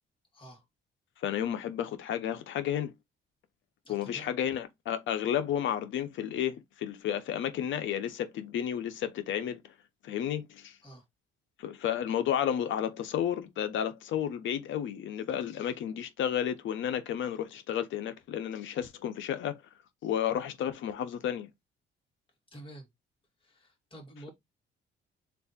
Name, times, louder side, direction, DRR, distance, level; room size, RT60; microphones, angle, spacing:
voice 1, 0.3-0.6 3.8-4.3 10.8-11.0 22.5-22.9 23.4-24.3, right 1 dB, 25° left, 2.0 m, -49 dB
voice 2, 1.2-2.9 3.9-9.7 10.0-10.8 11.6-19.6 20.0-21.5, left 10 dB, 75° left, 0.7 m, -32 dB
3.4 x 2.6 x 4.1 m
cardioid pair, 90°, 20 cm